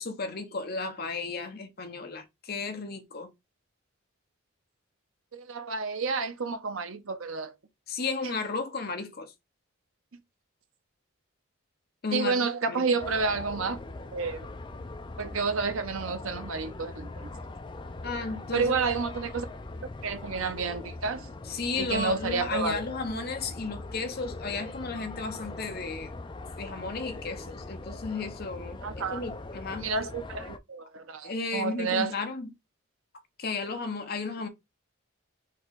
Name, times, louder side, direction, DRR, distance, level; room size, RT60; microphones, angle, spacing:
voice 1, 0.0-3.3 7.9-9.3 12.0-12.9 18.0-18.7 21.5-26.1 26.6-29.9 31.2-32.5 33.4-34.5, left 4 dB, 45° left, 0.8 m, -34 dB
voice 2, 5.3-7.5 12.1-13.8 14.1-14.5 15.2-17.3 18.5-19.5 20.0-21.3 21.8-22.8 28.8-29.2 29.8-32.1, right 4 dB, 75° right, 0.8 m, -30 dB
sound 1, 13.0-30.6, left 2 dB, 20° left, 0.3 m, -41 dB
4.6 x 3.0 x 3.8 m
head